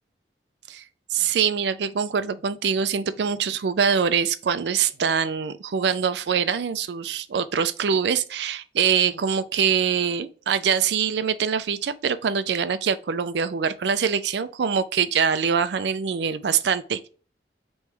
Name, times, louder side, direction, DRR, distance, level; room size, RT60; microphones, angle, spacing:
voice 1, 1.1-17.1, right 7 dB, 75° right, 0.4 m, -24 dB
3.4 x 3.1 x 4.6 m
head